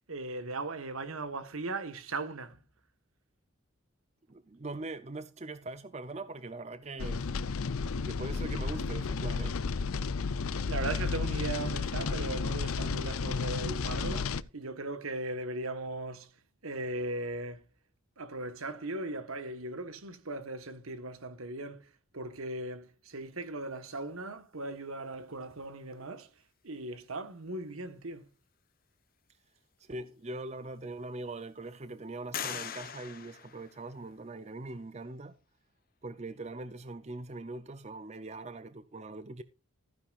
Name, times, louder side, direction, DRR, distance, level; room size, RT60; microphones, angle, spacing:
voice 1, 0.1-2.6 10.7-16.3 16.6-17.6 18.2-26.3 26.6-28.3, right 2 dB, 80° right, 1.4 m, -38 dB
voice 2, 4.3-7.2 8.0-9.6 29.8-35.4 36.0-39.4, right 2 dB, 30° right, 0.6 m, -42 dB
sound 1, 7.0-14.4, left 4 dB, 85° left, 0.6 m, -32 dB
sound 2, 30.1-30.2 30.7-31.4 32.3-34.3, left 8 dB, 45° left, 1.0 m, -41 dB
14.5 x 9.9 x 2.5 m
head